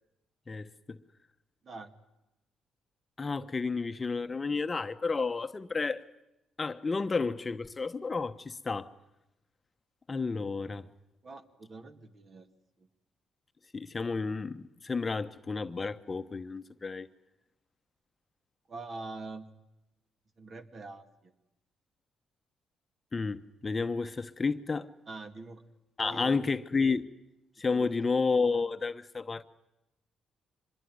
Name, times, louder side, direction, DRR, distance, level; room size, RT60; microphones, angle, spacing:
voice 1, 0.5-1.0 3.2-6.0 6.6-8.9 10.1-10.9 13.7-17.1 23.1-24.9 26.0-27.0 27.6-29.4, left 4 dB, 30° left, 1.0 m, -31 dB
voice 2, 11.2-12.5 18.7-19.5 20.4-21.3 25.1-25.6 26.0-26.3 27.7-28.0, right 3 dB, 45° right, 2.3 m, -44 dB
25.0 x 21.5 x 9.4 m
cardioid pair, 90°, 0 cm